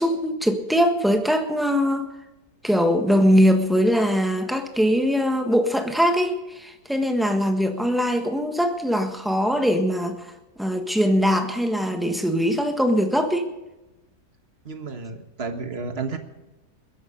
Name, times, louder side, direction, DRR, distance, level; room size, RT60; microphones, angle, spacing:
voice 1, 0.0-2.1 2.6-10.3 10.6-13.5, equal, ahead, 5 dB, 1.2 m, -21 dB
voice 2, 14.6-16.2, right 4 dB, 40° right, 7 dB, 1.5 m, -31 dB
21.0 x 11.0 x 5.2 m, 1.0 s
omnidirectional pair, 1.8 m